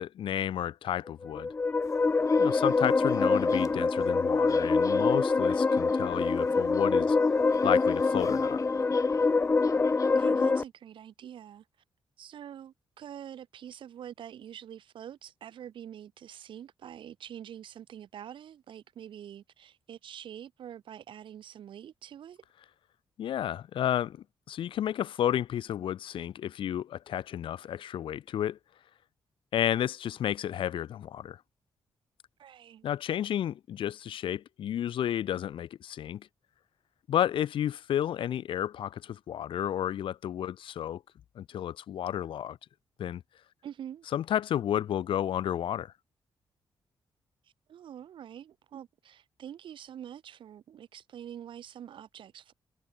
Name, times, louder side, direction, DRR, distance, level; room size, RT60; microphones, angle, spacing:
voice 1, 0.0-1.5 2.4-7.2 7.6-8.6 23.2-28.6 29.5-31.4 32.8-36.3 37.1-41.0 41.3-42.6 43.0-43.2 44.1-45.9, left 10 dB, 75° left, 1.7 m, -31 dB
sound 1, 1.2-10.6, left 4 dB, 20° left, 0.8 m, -25 dB
sound 2, 1.8-10.4, left 6 dB, 40° left, 4.3 m, -51 dB
voice 2, 10.0-11.6 12.2-22.4 32.4-32.9 43.6-44.1 47.7-52.5, right 10 dB, 70° right, 7.6 m, -45 dB
wide cardioid pair, 160°, 9 cm